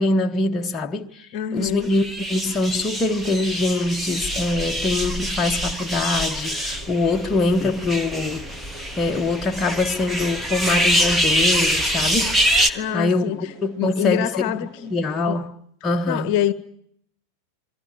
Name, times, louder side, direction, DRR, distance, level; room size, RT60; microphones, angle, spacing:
voice 1, 0.0-8.5 9.0-15.6 15.8-16.3, left 2 dB, 20° left, 1.2 m, -24 dB
voice 2, 1.3-1.9 12.7-14.9 15.3-15.4 16.1-16.5, left 10 dB, 45° left, 1.1 m, -26 dB
sound 1, 1.8-12.7, equal, 5° right, 1.6 m, -24 dB
sound 2, 6.0-15.3, right 1 dB, 30° right, 4.0 m, -46 dB
28.0 x 22.5 x 8.9 m
figure-of-eight pair, 90°, 0 cm